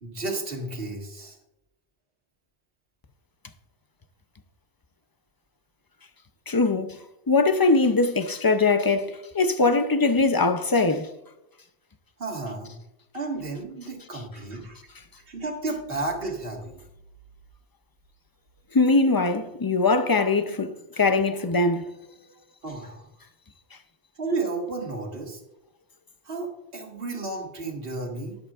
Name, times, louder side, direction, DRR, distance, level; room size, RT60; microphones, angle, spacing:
voice 1, 0.0-1.4 12.2-12.7 13.1-14.8 15.3-16.8 22.6-23.1 24.2-25.4 26.3-28.4, right 3 dB, 60° right, 2.0 m, -32 dB
voice 2, 6.5-7.0 7.3-11.1 18.7-21.9, left 3 dB, 30° left, 0.5 m, -22 dB
12.0 x 11.0 x 2.4 m
omnidirectional pair, 1.1 m